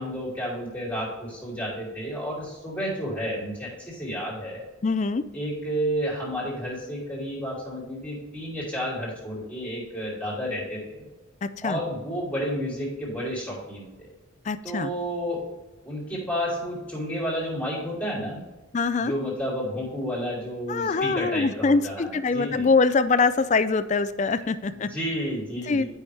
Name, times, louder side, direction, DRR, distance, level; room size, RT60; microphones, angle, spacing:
voice 1, 0.0-4.6 5.3-11.0 11.6-14.1 14.6-15.4 15.8-18.4 19.0-22.7 24.7-25.9, equal, 10° left, -7 dB, 3.0 m, -31 dB
voice 2, 4.8-5.2 11.4-11.8 14.5-14.9 18.7-19.1 20.7-24.9 25.7-25.8, left 4 dB, 35° left, 13 dB, 0.4 m, -23 dB
11.5 x 5.6 x 3.4 m, 1.1 s
head